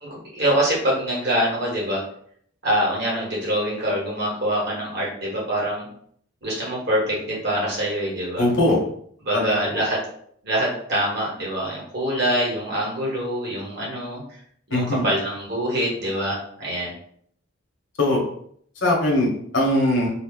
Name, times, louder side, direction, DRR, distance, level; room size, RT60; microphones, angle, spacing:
voice 1, 0.0-2.0 2.6-5.9 6.4-8.4 9.2-10.0 10.4-14.2 14.7-16.9, right 1 dB, 55° right, -4 dB, 1.2 m, -24 dB
voice 2, 8.4-8.8 9.3-9.5 14.7-15.0 18.0-18.2 18.8-20.1, left 1 dB, 65° left, -1 dB, 0.9 m, -20 dB
2.6 x 2.0 x 3.5 m, 0.64 s
head